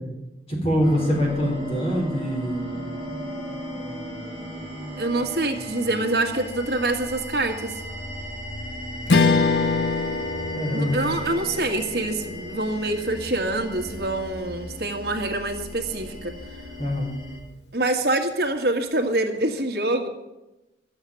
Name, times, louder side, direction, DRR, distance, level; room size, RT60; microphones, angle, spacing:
voice 1, 0.5-2.6 10.5-11.0 16.8-17.1, equal, 35° left, -1 dB, 4.0 m, -24 dB
sound 1, 0.8-17.4, equal, 5° left, 7.1 m, -36 dB
voice 2, 5.0-7.7 10.7-16.3 17.7-20.1, right 2 dB, 65° right, 4 dB, 1.9 m, -25 dB
Strum, 9.1-13.7, left 4 dB, 85° left, 0.9 m, -25 dB
12.5 x 7.9 x 9.9 m, 0.99 s
head